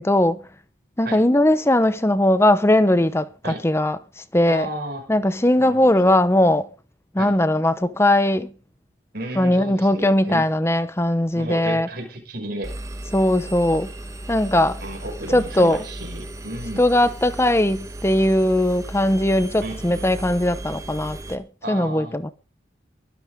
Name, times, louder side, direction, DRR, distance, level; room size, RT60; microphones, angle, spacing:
voice 1, 0.0-0.4 1.0-4.7 5.1-6.7 7.1-8.5 9.4-11.9 13.1-13.9 14.3-14.8 15.3-15.8 16.8-22.3, left 1 dB, 15° left, 0.8 m, -19 dB
voice 2, 4.4-5.1 5.6-6.1 7.2-7.3 9.1-10.4 11.3-12.7 14.8-16.8 19.6-20.1 21.6-22.3, right 1 dB, 50° right, 5.9 m, -33 dB
Engine, 12.6-21.4, right 1 dB, 15° right, 1.3 m, -36 dB
23.0 x 9.5 x 3.7 m
head